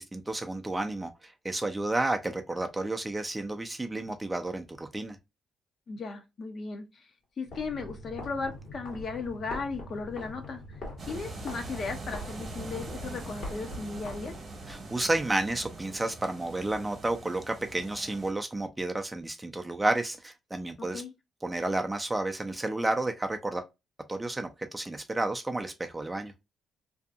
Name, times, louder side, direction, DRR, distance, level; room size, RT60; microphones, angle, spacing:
voice 1, 0.0-5.2 14.7-21.0 21.4-23.6 24.1-26.3, right 2 dB, 15° right, 0.4 m, -31 dB
voice 2, 5.9-7.1 7.4-10.6 11.1-14.3 20.8-21.1, left 4 dB, 50° left, 0.7 m, -36 dB
sound 1, 7.4-14.8, left 1 dB, 70° left, 1.4 m, -43 dB
sound 2, 11.0-18.3, right 2 dB, 45° right, 1.0 m, -43 dB
2.7 x 2.5 x 2.4 m
cardioid pair, 90°, 0 cm